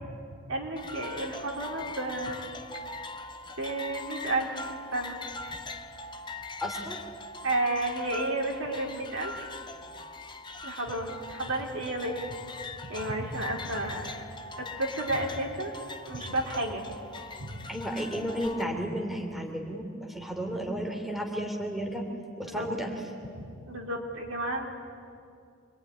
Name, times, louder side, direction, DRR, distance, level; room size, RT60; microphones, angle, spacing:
voice 1, 0.5-2.4 3.6-5.2 7.4-9.5 10.6-12.3 12.9-14.2 14.6-15.7 16.1-16.8 17.4-17.5 22.4-22.7 23.7-24.7, right 2 dB, 65° right, 0 dB, 3.9 m, -32 dB
sound 1, 0.8-18.6, left 2 dB, 20° left, 1.0 m, -41 dB
voice 2, 6.6-7.0 17.7-22.0 22.4-22.9, equal, ahead, 1 dB, 3.0 m, -33 dB
26.0 x 23.0 x 10.0 m, 2.4 s
head